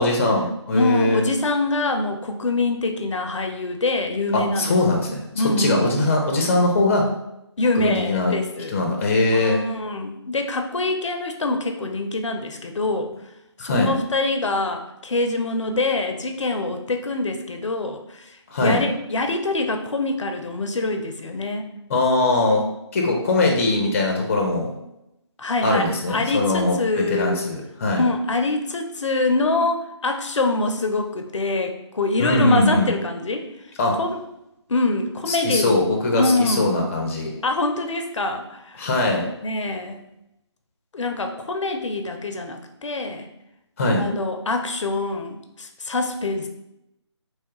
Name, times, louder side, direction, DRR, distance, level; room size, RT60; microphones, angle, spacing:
voice 1, 0.0-1.3 4.3-5.2 5.6-7.1 7.7-8.3 8.7-9.6 13.6-13.9 18.5-18.8 21.9-22.6 22.9-24.7 25.6-28.0 32.2-32.9 33.8-34.0 35.3-37.3 38.8-39.2 43.8-44.0, left 2 dB, 30° left, 1 dB, 0.5 m, -21 dB
voice 2, 0.7-4.8 5.4-5.9 7.6-8.8 9.3-13.1 13.6-21.6 25.4-27.4 27.9-33.5 33.9-34.2 34.7-35.7 36.2-36.8 37.4-38.9 39.4-40.0 40.9-43.3 44.0-46.5, left 2 dB, 85° left, 6 dB, 0.5 m, -25 dB
3.0 x 2.3 x 3.0 m, 0.85 s
figure-of-eight pair, 155°, 15 cm